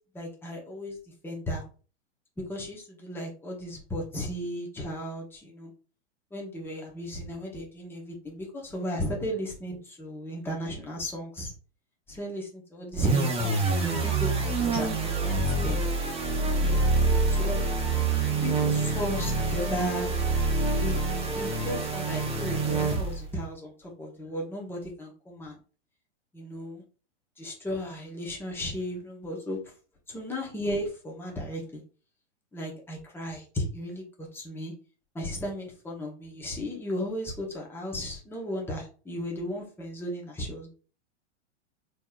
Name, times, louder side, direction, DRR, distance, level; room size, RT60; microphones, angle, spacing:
voice 1, 0.1-1.0 1.2-1.6 2.5-5.7 6.3-11.5 12.1-15.8 16.6-16.9 17.3-17.6 18.4-20.1 20.8-21.0 21.3-25.6 26.3-26.8 27.4-29.6 30.1-31.8 32.5-34.7 35.1-40.7, equal, 5° left, -2 dB, 1.0 m, -35 dB
sound 1, 12.9-23.3, right 3 dB, 15° right, 0.8 m, -26 dB
4.1 x 3.1 x 2.4 m, 0.38 s
hypercardioid pair, 130°, 36 cm